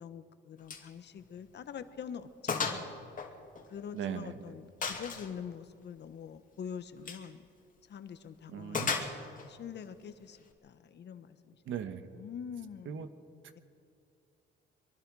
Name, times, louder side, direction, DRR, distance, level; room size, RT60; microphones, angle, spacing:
voice 1, 0.0-3.0 3.7-7.4 7.9-11.6 12.1-13.1, left 7 dB, 60° left, 11 dB, 1.3 m, -45 dB
Gunshot gunfire, 0.7-0.9 1.2-1.4 1.8-1.9 2.5-2.9 3.2-4.1 4.8-5.3 7.0-7.3 8.7-9.5, left 5 dB, 40° left, 2.5 m, -34 dB
voice 2, 3.9-4.4 8.5-8.9 11.6-12.1 12.8-13.1, right 8 dB, 75° right, 10 dB, 1.4 m, -38 dB
24.0 x 23.0 x 4.9 m, 2.6 s
cardioid pair, 90°, 20 cm